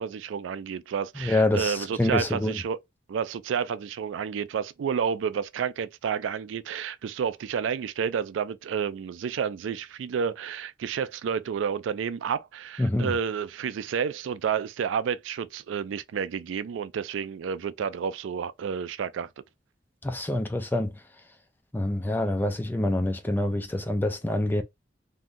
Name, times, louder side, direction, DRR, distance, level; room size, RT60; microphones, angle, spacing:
voice 1, 0.0-2.8 3.1-19.3, right 7 dB, 85° right, 0.3 m, -30 dB
voice 2, 1.2-2.6 12.8-13.1 20.0-20.9 21.7-24.6, left 1 dB, 10° left, 0.3 m, -26 dB
2.6 x 2.2 x 3.6 m
head